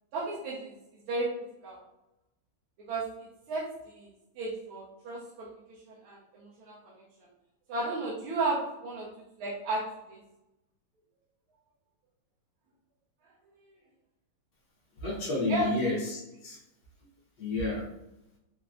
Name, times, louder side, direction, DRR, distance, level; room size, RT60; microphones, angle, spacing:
voice 1, 0.1-0.7 1.1-1.3 1.6-1.8 2.9-6.9 7.7-9.1 9.4-9.8 10.1-10.2 15.4-15.7, right 2 dB, 75° right, -5 dB, 1.6 m, -34 dB
voice 2, 15.0-16.6 17.4-17.8, left 2 dB, 60° left, -5 dB, 1.6 m, -31 dB
4.4 x 3.1 x 2.5 m, 0.90 s
omnidirectional pair, 2.4 m